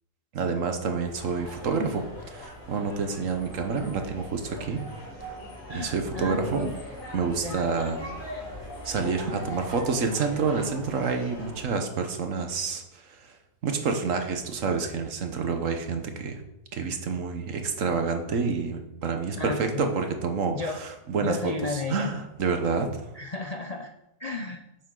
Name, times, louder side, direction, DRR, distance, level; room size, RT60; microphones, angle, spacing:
voice 1, 0.3-4.8 5.7-6.7 7.1-8.0 8.8-13.4 13.6-16.4 16.7-22.9, right 4 dB, 55° right, 5 dB, 1.3 m, -28 dB
sound 1, 1.0-11.6, equal, 55° left, 3.2 m, -41 dB
voice 2, 5.7-6.8 7.4-7.6 19.4-19.9 20.5-20.8 21.2-22.1 23.1-23.9 24.2-24.6, left 3 dB, 90° left, 3 dB, 0.3 m, -33 dB
10.0 x 7.3 x 3.8 m, 0.90 s
omnidirectional pair, 1.7 m